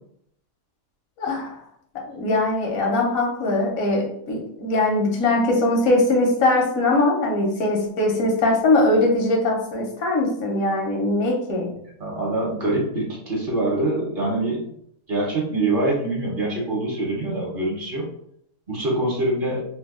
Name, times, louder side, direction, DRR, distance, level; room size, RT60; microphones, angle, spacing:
voice 1, 1.2-1.5 2.1-11.7, left 2 dB, 80° left, 1 dB, 1.2 m, -21 dB
voice 2, 12.0-14.6 15.1-18.1 18.7-19.7, right 2 dB, 45° right, -3 dB, 0.8 m, -24 dB
2.8 x 2.2 x 3.5 m, 0.70 s
omnidirectional pair, 1.4 m